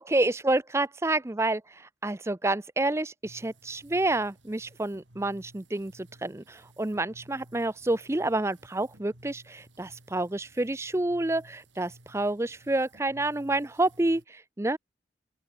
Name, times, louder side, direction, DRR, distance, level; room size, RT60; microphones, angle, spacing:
voice 1, 0.0-1.6 2.0-14.2 14.6-14.8, right 2 dB, 15° right, 0.5 m, -28 dB
sound 1, 3.2-14.3, right 1 dB, 80° right, 4.5 m, -56 dB
open air
head